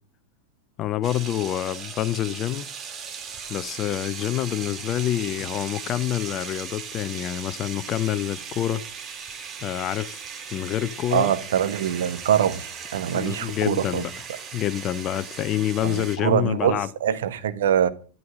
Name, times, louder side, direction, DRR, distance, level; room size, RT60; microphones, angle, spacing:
voice 1, 0.8-2.7 3.5-8.8 9.6-10.2 10.5-11.3 13.1-14.1 14.5-16.9, left 12 dB, 30° left, 0.8 m, -27 dB
sound 1, 1.0-16.2, right 6 dB, 25° right, 2.2 m, -38 dB
voice 2, 11.1-14.0 15.8-17.9, right 10 dB, 60° right, 1.4 m, -24 dB
14.0 x 12.5 x 6.4 m
figure-of-eight pair, 90°, 0 cm